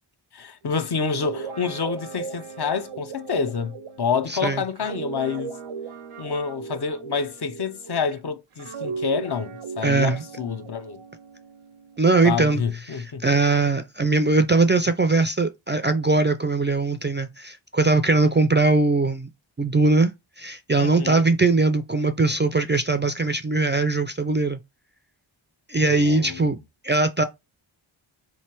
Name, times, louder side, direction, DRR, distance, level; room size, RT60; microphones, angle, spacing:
voice 1, 0.3-5.6 6.2-11.0 12.2-13.2 20.8-21.2 25.9-26.5, left 6 dB, 50° left, 0.6 m, -28 dB
Guitar, 0.9-8.1 8.6-12.3, right 5 dB, 90° right, 0.7 m, -37 dB
voice 2, 4.3-4.6 9.8-10.2 12.0-12.6 12.9-19.3 19.6-24.6 25.7-26.6 26.8-27.2, right 3 dB, 25° right, 0.3 m, -21 dB
3.7 x 3.2 x 4.4 m
wide cardioid pair, 75°, 50 cm